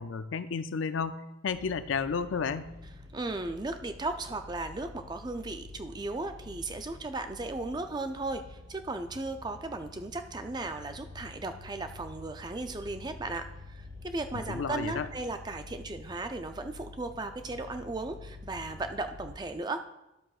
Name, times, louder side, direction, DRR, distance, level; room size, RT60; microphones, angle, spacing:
voice 1, 0.0-2.7 14.3-15.1, left 5 dB, 70° left, 12 dB, 0.4 m, -32 dB
sound 1, 1.5-19.3, left 3 dB, 60° right, 3.2 m, -48 dB
voice 2, 3.1-19.8, right 2 dB, 20° right, 7 dB, 0.4 m, -36 dB
12.0 x 7.6 x 2.4 m, 0.94 s
head